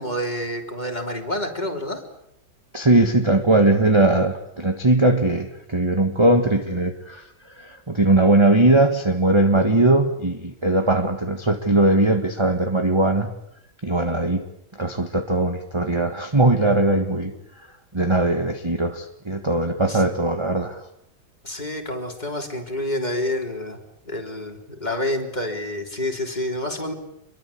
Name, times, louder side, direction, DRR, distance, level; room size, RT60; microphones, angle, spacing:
voice 1, 0.0-2.0 19.9-20.0 21.4-23.8 24.1-26.9, left 1 dB, 20° left, 3 dB, 3.9 m, -28 dB
voice 2, 2.7-13.3 13.8-14.4 14.7-17.7 17.9-20.9, right 2 dB, 15° right, 6 dB, 1.5 m, -20 dB
27.0 x 23.0 x 8.6 m, 0.75 s
omnidirectional pair, 2.1 m